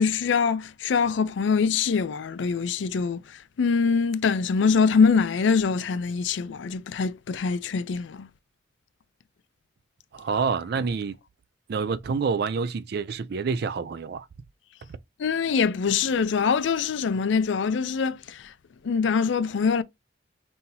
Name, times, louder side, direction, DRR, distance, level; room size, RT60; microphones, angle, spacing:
voice 1, 0.0-8.3 15.2-18.5 18.8-19.8, left 5 dB, 70° left, 0.4 m, -24 dB
voice 2, 10.1-11.2 11.7-14.3, right 5 dB, 55° right, 0.4 m, -27 dB
5.4 x 2.8 x 2.6 m
head